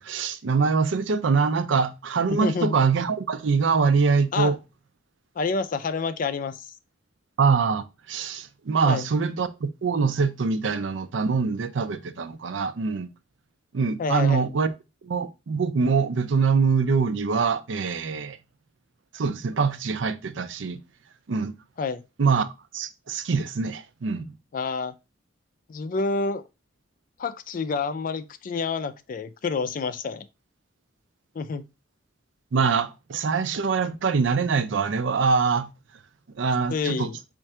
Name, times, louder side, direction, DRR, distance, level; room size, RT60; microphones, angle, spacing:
voice 1, 0.0-4.6 7.4-13.1 13.7-14.7 15.0-18.4 19.1-20.8 21.3-21.5 22.2-22.4 22.7-24.2 32.5-35.7 36.4-37.1, right 5 dB, 80° right, 0.5 m, -24 dB
voice 2, 2.3-2.8 4.3-4.5 5.4-6.7 8.8-9.1 14.0-14.5 21.8-22.0 24.5-24.9 25.7-26.4 27.2-30.3 31.4-31.6 36.7-37.2, left 4 dB, 45° left, 0.4 m, -28 dB
4.4 x 2.5 x 4.2 m
head